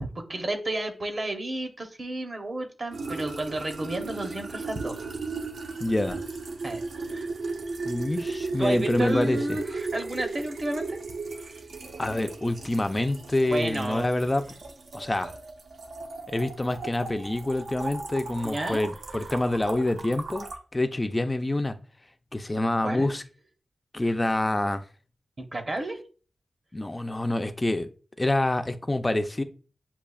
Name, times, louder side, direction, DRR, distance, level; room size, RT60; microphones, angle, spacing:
voice 1, 0.1-5.0 6.6-7.3 8.2-11.0 11.4-11.6 13.5-14.3 18.4-18.8 22.8-23.1 25.4-26.0, right 1 dB, 35° right, 0.8 m, -32 dB
sound 1, 2.9-20.6, right 3 dB, 85° right, 0.7 m, -36 dB
voice 2, 5.8-6.2 7.8-9.6 12.0-14.4 14.9-15.3 16.3-20.5 20.7-21.8 22.3-23.2 23.9-24.8 26.7-27.9 28.2-29.4, left 1 dB, 15° left, 0.3 m, -26 dB
7.8 x 2.7 x 2.3 m
wide cardioid pair, 165°, 0 cm